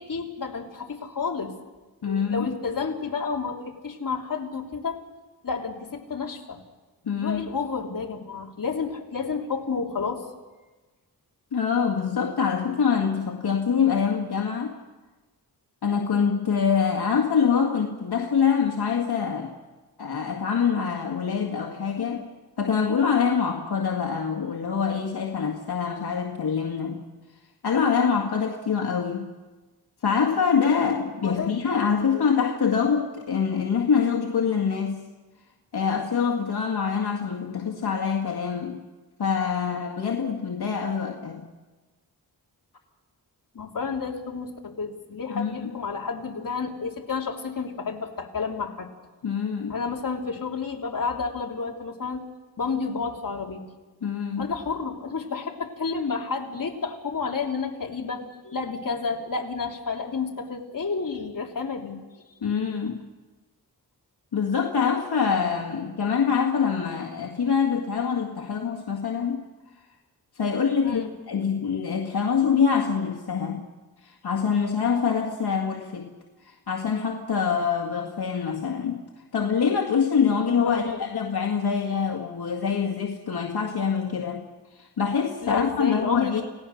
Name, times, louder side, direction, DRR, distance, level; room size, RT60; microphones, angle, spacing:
voice 1, 0.0-1.5 2.0-5.0 5.4-6.6 7.2-10.2 31.2-31.5 32.1-32.2 43.5-48.9 49.7-52.2 52.6-53.6 54.4-62.0 70.8-71.1 80.6-81.0 85.4-86.4, left 5 dB, 55° left, 0 dB, 3.1 m, -30 dB
voice 2, 2.0-2.5 7.0-7.4 11.5-14.8 15.8-19.5 20.0-22.3 22.6-27.0 27.6-29.3 30.0-35.0 35.7-38.8 39.2-41.4 45.3-45.7 49.2-49.7 54.0-54.5 62.4-63.0 64.3-69.5 70.4-73.7 74.0-76.1 76.4-79.0 79.3-84.5 84.8-86.4, left 6 dB, 80° left, 1 dB, 2.1 m, -25 dB
29.5 x 17.5 x 6.5 m, 1.2 s
wide cardioid pair, 85°, 39 cm